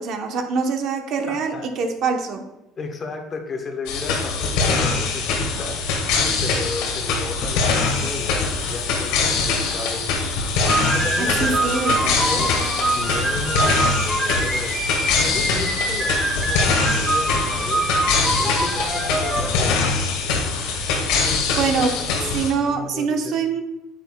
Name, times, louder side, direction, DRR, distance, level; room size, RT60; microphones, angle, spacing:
voice 1, 0.0-2.4 11.2-12.1 21.5-21.9 22.3-23.6, right 5 dB, 50° right, 4 dB, 0.9 m, -24 dB
voice 2, 1.3-1.7 2.8-5.8 6.4-10.0 10.9-12.5 12.9-14.8 15.2-17.9 18.4-19.9 21.5-22.4 22.6-23.4, left 3 dB, 25° left, 4 dB, 1.0 m, -34 dB
sound 1, 3.9-22.5, left 4 dB, 90° left, 1.7 m, -23 dB
Buzz, 7.8-14.1, right 3 dB, 85° right, 2.5 m, -41 dB
sound 2, 10.6-19.5, right 2 dB, 15° right, 0.8 m, -25 dB
9.3 x 8.9 x 2.2 m, 0.91 s
cardioid pair, 155°, 0 cm